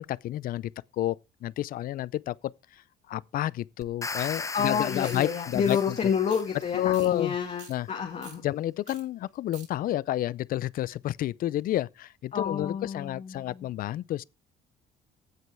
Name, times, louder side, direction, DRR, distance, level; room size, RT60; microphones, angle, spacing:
voice 1, 0.0-2.4 3.1-5.8 6.7-7.4 7.7-7.9 8.4-14.2, left 13 dB, 60° left, 0.5 m, -30 dB
sound 1, 3.8-7.0, left 4 dB, 20° left, 0.8 m, -38 dB
voice 2, 4.5-8.4 12.3-13.7, left 7 dB, 40° left, 2.0 m, -29 dB
sound 2, 5.0-5.2 5.6-5.8 6.3-6.6 6.9-7.1 7.4-7.7 8.2-8.4 8.9-9.0 9.3-9.7, right 6 dB, 45° right, 5.0 m, -47 dB
15.5 x 5.3 x 4.7 m
cardioid pair, 110°, 17 cm